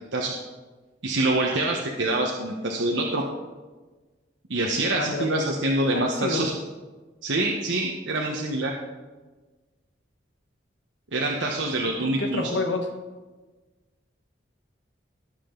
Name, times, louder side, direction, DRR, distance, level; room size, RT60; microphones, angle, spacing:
voice 1, 1.0-3.2 4.5-6.5 7.2-8.7 11.1-12.5, right 2 dB, 75° right, 0 dB, 1.2 m, -25 dB
voice 2, 4.9-5.5 5.9-6.5 12.0-12.9, left 2 dB, 80° left, 4 dB, 1.5 m, -29 dB
18.5 x 7.7 x 3.9 m, 1.3 s
head